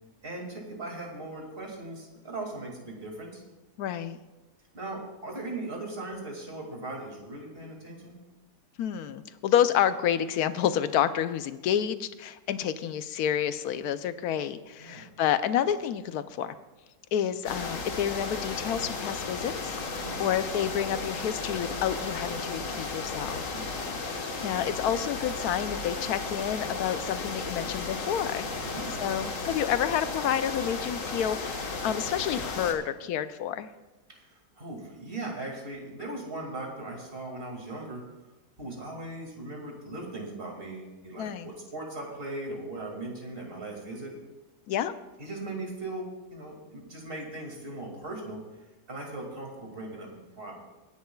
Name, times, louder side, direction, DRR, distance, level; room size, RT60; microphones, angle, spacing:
voice 1, 0.2-3.4 4.7-8.2 14.8-15.1 20.0-20.2 23.5-23.8 28.6-29.1 34.1-34.2 34.6-38.0 38.6-44.1 45.2-48.4 48.9-50.6, right 2 dB, 35° right, 0 dB, 2.5 m, -39 dB
voice 2, 3.8-4.2 8.8-16.6 17.1-23.6 24.4-28.5 29.0-33.7 41.2-41.5 44.7-44.9, left 9 dB, 70° left, 12 dB, 1.1 m, -29 dB
sound 1, 17.4-32.7, left 4 dB, 55° left, 1.6 m, -34 dB
24.0 x 10.5 x 2.3 m, 1.1 s
omnidirectional pair, 1.8 m